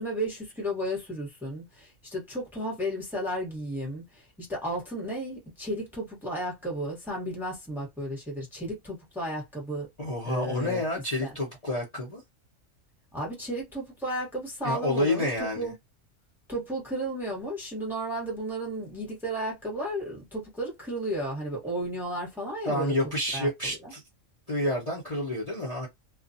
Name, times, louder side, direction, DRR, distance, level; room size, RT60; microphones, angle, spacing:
voice 1, 0.0-9.9 10.2-11.3 13.1-15.7 16.5-23.9, right 1 dB, ahead, 1.0 m, -33 dB
voice 2, 10.0-12.2 14.6-15.7 22.6-24.0 24.5-25.9, left 1 dB, 35° left, 0.8 m, -29 dB
2.4 x 2.3 x 2.6 m
omnidirectional pair, 1.3 m